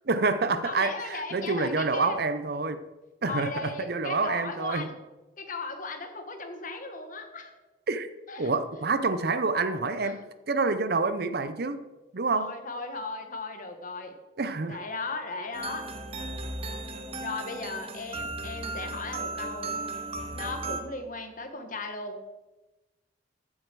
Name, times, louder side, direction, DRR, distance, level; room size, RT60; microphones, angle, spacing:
voice 1, 0.1-2.8 3.2-4.9 7.9-8.1 8.4-10.2 10.5-11.8 12.1-12.5 14.4-14.8, right 3 dB, 55° right, 11 dB, 0.7 m, -27 dB
voice 2, 0.6-2.3 3.2-4.9 5.4-7.5 8.3-8.5 10.0-10.1 12.3-14.1 14.7-15.9 17.2-19.7 20.3-22.2, left 3 dB, 45° left, 6 dB, 1.5 m, -36 dB
sound 1, 15.5-20.8, right 3 dB, 30° right, 1.0 m, -36 dB
15.0 x 7.5 x 4.7 m, 1.1 s
head